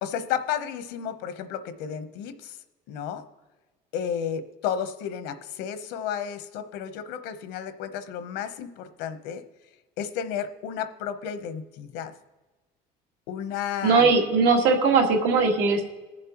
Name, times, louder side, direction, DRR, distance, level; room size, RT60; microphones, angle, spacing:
voice 1, 0.0-2.6 2.9-3.2 3.9-9.4 10.0-12.1 13.3-14.1, left 8 dB, 85° left, 10 dB, 0.9 m, -32 dB
voice 2, 13.8-15.9, right 4 dB, 90° right, 1 dB, 1.9 m, -20 dB
20.5 x 7.5 x 3.0 m, 1.2 s
cardioid pair, 155°, 17 cm